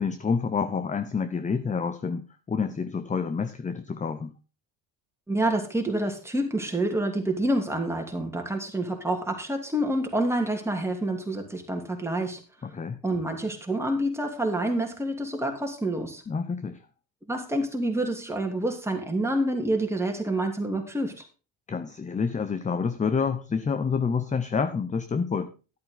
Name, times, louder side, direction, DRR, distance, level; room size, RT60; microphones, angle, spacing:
voice 1, 0.0-4.3 12.6-13.0 16.3-16.8 21.7-25.5, left 5 dB, 15° left, 11 dB, 0.6 m, -28 dB
voice 2, 5.3-12.4 13.0-16.2 17.3-21.2, right 1 dB, 5° right, 3 dB, 2.8 m, -28 dB
11.5 x 8.6 x 3.9 m, 0.33 s
supercardioid pair, 95°, 48 cm